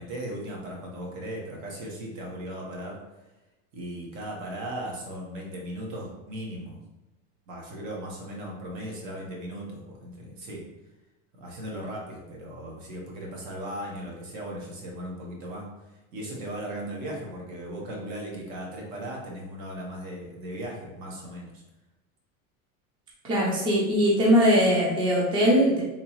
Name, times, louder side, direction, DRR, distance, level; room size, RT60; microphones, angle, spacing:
voice 1, 0.0-3.0 3.7-6.8 7.5-10.6 11.4-15.7 16.1-21.6, right 1 dB, 60° right, -2 dB, 1.3 m, -37 dB
voice 2, 23.2-25.8, equal, 10° right, -5 dB, 0.5 m, -21 dB
3.6 x 3.0 x 3.0 m, 1.0 s
supercardioid pair, 150°, 43 cm